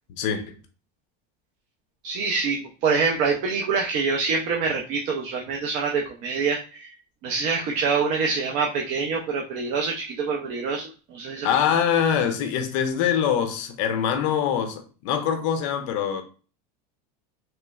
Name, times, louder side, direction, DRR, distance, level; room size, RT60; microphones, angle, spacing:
voice 1, 0.1-0.6 11.4-16.2, left 8 dB, 55° left, 0.5 m, -24 dB
voice 2, 2.0-6.9 7.2-11.5, right 5 dB, 40° right, 0.4 m, -25 dB
3.1 x 3.0 x 2.2 m
supercardioid pair, 165°, 20 cm